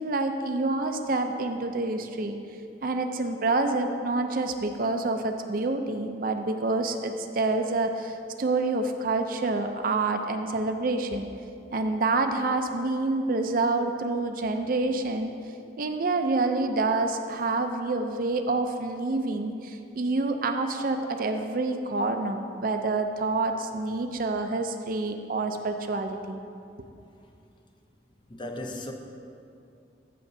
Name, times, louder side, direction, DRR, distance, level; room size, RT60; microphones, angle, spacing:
voice 1, 0.0-2.4 2.8-11.3 11.7-15.3 15.8-26.4, right 3 dB, 50° right, 6 dB, 0.5 m, -27 dB
voice 2, 28.3-28.9, left 1 dB, 25° left, 3 dB, 0.6 m, -35 dB
15.0 x 6.0 x 2.7 m, 2.5 s
head